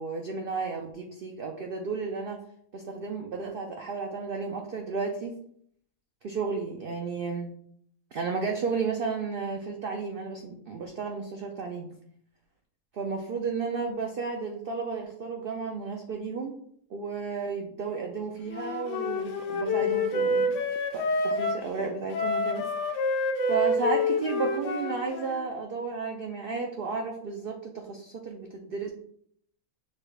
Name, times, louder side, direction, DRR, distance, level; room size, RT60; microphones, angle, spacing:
voice 1, 0.0-2.4 2.7-5.4 6.2-7.5 8.1-11.9 12.9-16.6 16.9-20.6 20.9-22.7 23.5-28.9, right 4 dB, 70° right, 2 dB, 0.5 m, -33 dB
Wind instrument woodwind instrument, 18.5-21.6 22.1-25.4, left 2 dB, 65° left, 0.9 m, -28 dB
6.5 x 2.3 x 3.3 m, 0.66 s
omnidirectional pair, 1.5 m